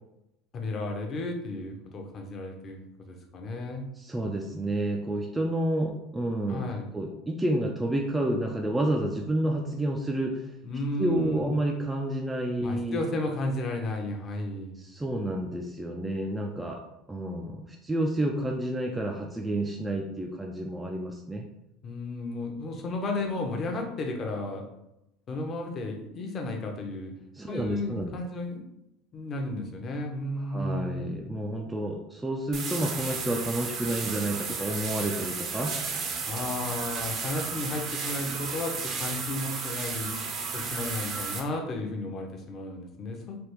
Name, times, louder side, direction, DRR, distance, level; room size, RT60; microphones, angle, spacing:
voice 1, 0.5-3.9 6.5-6.9 10.6-11.5 12.6-14.8 21.8-24.6 25.3-27.1 27.5-28.6 29.1-31.1 36.3-40.2 40.5-43.4, left 2 dB, 35° left, 2 dB, 0.7 m, -33 dB
voice 2, 4.0-6.7 6.9-10.5 11.0-13.0 14.8-16.8 17.1-21.5 27.3-28.2 30.5-35.8, right 1 dB, 10° right, 0 dB, 0.3 m, -30 dB
sound 1, 32.5-41.4, right 5 dB, 45° right, 0.6 m, -33 dB
3.3 x 2.3 x 3.0 m, 0.86 s
supercardioid pair, 125°, 0 cm